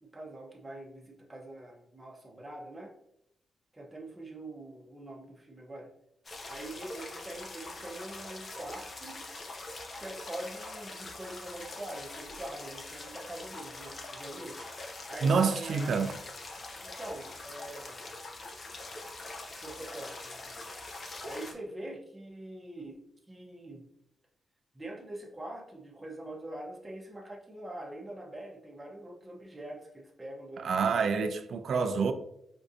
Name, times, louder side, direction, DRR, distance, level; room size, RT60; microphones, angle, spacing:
voice 1, 0.0-2.9 3.7-5.9 6.5-9.3 10.0-14.6 15.1-15.9 16.8-18.1 19.6-20.6 21.2-23.0 23.3-23.9 24.7-31.0, right 1 dB, 15° right, 0.7 m, -44 dB
sound 1, 6.2-21.5, left 2 dB, 40° left, 0.6 m, -43 dB
voice 2, 15.2-16.1 30.6-32.1, right 5 dB, 65° right, 0.3 m, -27 dB
4.5 x 2.5 x 2.6 m
cardioid pair, 115°, 0 cm